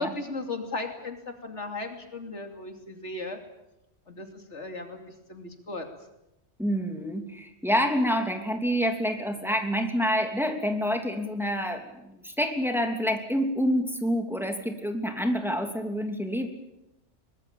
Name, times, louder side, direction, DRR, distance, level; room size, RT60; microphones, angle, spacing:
voice 1, 0.0-3.4 4.1-5.9, left 2 dB, 80° left, 5 dB, 3.2 m, -36 dB
voice 2, 6.6-16.5, equal, ahead, 4 dB, 3.0 m, -27 dB
23.5 x 20.5 x 8.9 m, 0.91 s
omnidirectional pair, 1.2 m